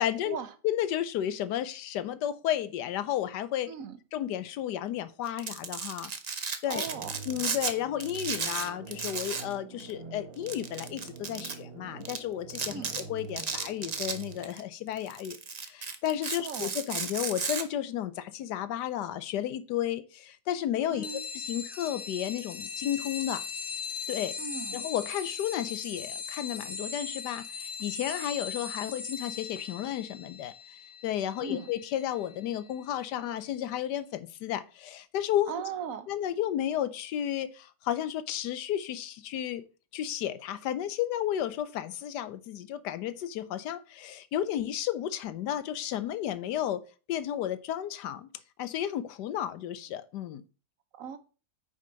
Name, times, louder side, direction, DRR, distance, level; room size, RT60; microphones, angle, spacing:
voice 1, 0.0-0.4 0.6-3.7 4.1-6.8 7.3-12.8 13.1-23.4 24.1-24.4 24.7-30.5 31.0-35.5 36.1-39.6 39.9-48.3 48.6-50.4, left 11 dB, 75° left, 1.2 m, -33 dB
voice 2, 3.7-4.0 6.7-7.1 12.7-12.9 16.4-16.7 20.9-21.2 24.4-24.8 31.4-31.7 35.5-36.1 51.0-51.2, right 7 dB, 55° right, 1.1 m, -38 dB
Domestic sounds home sounds, 5.3-7.7 8.0-9.5 9.8-9.9 10.5-11.5 12.1-12.2 12.5-13.0 13.4-14.6 15.0-17.6, right 5 dB, 80° right, 0.3 m, -34 dB
sound 1, 6.9-14.4, right 5 dB, 35° right, 1.5 m, -46 dB
sound 2, 21.0-33.1, left 5 dB, 40° left, 0.8 m, -39 dB
9.2 x 5.1 x 3.9 m
omnidirectional pair, 1.9 m